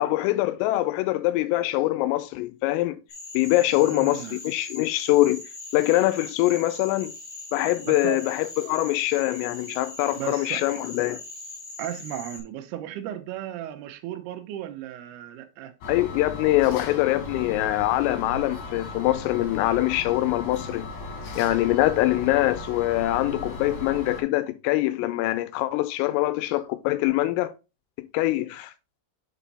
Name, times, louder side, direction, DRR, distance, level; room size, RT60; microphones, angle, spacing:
voice 1, 0.0-3.0 3.3-5.4 5.7-7.1 7.5-11.2 15.9-20.9 21.4-27.5 28.0-28.7, left 16 dB, 85° left, 3.2 m, -24 dB
Cricket / Frog, 3.1-12.4, left 2 dB, 30° left, 1.9 m, -41 dB
voice 2, 3.8-4.4 7.8-8.2 10.2-10.6 11.8-15.8, right 12 dB, 85° right, 2.3 m, -35 dB
sound 1, 15.8-24.2, left 2 dB, 65° left, 3.4 m, -37 dB
7.1 x 4.6 x 4.0 m
omnidirectional pair, 5.8 m